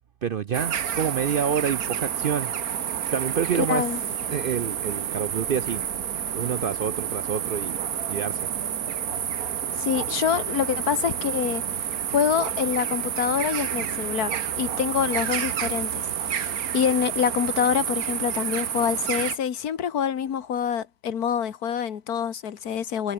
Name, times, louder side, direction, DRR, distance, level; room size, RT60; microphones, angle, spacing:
voice 1, 0.2-2.5 3.1-3.8 4.3-5.8 6.3-7.8 8.1-8.5, right 8 dB, 60° right, 0.5 m, -27 dB
sound 1, 0.5-19.4, right 9 dB, 75° right, 1.6 m, -29 dB
voice 2, 3.6-4.0 9.8-11.6 12.1-23.1, left 8 dB, 90° left, 1.8 m, -26 dB
omnidirectional pair, 1.6 m